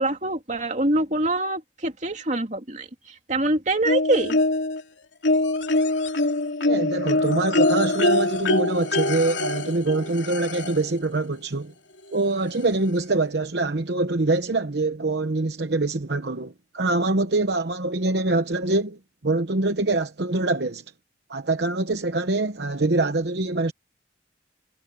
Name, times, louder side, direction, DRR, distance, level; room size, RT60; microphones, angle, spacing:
voice 1, 0.0-4.4, right 2 dB, 40° right, 2.6 m, -25 dB
sound 1, 3.8-4.8 5.2-10.9 12.1-12.2 12.6-12.7, left 2 dB, 85° left, 2.9 m, -23 dB
voice 2, 6.6-11.7 12.1-20.8 21.3-23.7, right 2 dB, 65° right, 1.0 m, -24 dB
head